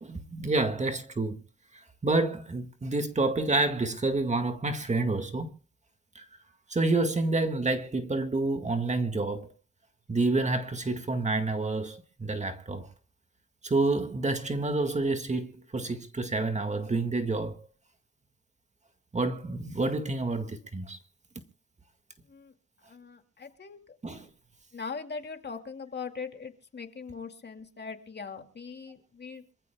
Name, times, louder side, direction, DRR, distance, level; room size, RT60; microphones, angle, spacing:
voice 1, 0.0-1.4 1.7-5.5 6.2-6.3 6.7-9.5 10.1-12.9 13.6-17.7 19.1-21.0 24.0-24.3, right 2 dB, 25° right, 1.9 m, -28 dB
voice 2, 22.9-23.8 24.7-29.4, left 5 dB, 35° left, 2.4 m, -40 dB
27.0 x 14.5 x 2.3 m
cardioid pair, 90°, 30 cm